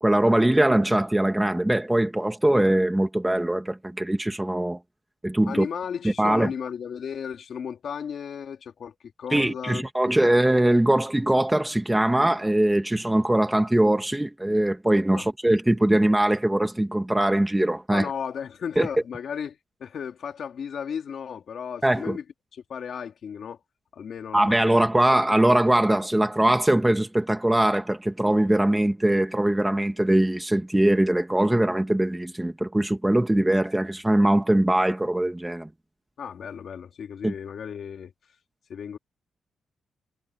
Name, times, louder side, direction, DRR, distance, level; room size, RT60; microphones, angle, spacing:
voice 1, 0.0-4.8 5.2-5.7 6.0-6.5 9.3-18.1 18.8-18.9 21.8-22.2 24.3-35.7 37.2-37.3, right 1 dB, 5° right, 1.6 m, -21 dB
voice 2, 5.5-9.9 10.2-10.4 15.1-15.3 17.9-22.2 22.5-23.6 23.9-24.8 25.3-25.4 36.2-38.1 38.7-39.0, left 7 dB, 55° left, 3.5 m, -35 dB
wide cardioid pair, 145°, 0 cm